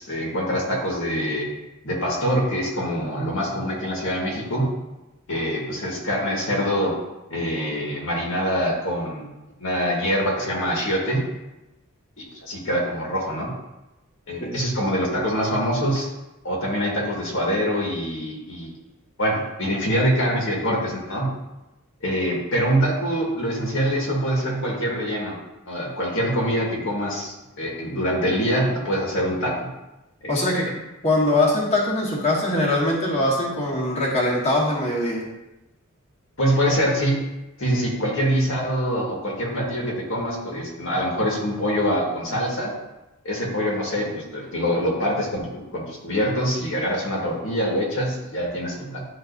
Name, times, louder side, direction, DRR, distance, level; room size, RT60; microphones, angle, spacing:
voice 1, 0.0-1.5 1.8-4.7 5.3-7.0 7.3-9.2 9.6-11.2 12.2-13.6 14.3-16.1 16.4-18.7 19.2-21.4 22.0-25.3 25.7-29.7 30.2-30.7 36.4-37.3 37.6-42.7 43.2-49.0, equal, 65° left, -2 dB, 1.6 m, -24 dB
voice 2, 30.3-30.7 31.0-35.2, left 1 dB, 30° left, -5 dB, 1.4 m, -22 dB
11.0 x 3.9 x 2.6 m, 0.99 s
head